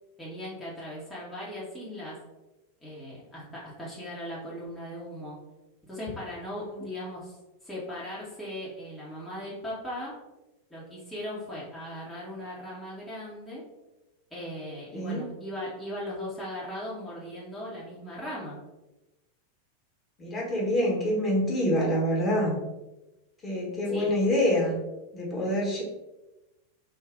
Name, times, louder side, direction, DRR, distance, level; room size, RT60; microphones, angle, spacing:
voice 1, 0.2-2.2 2.8-5.4 5.9-7.4 7.6-10.2 10.7-13.6 14.3-18.6 23.9-24.2, left 1 dB, 5° left, -9 dB, 1.1 m, -38 dB
voice 2, 20.2-22.6 23.4-24.8 25.1-25.8, equal, 20° left, -4 dB, 1.3 m, -26 dB
3.6 x 2.6 x 3.6 m, 1.0 s
figure-of-eight pair, 90°, 0 cm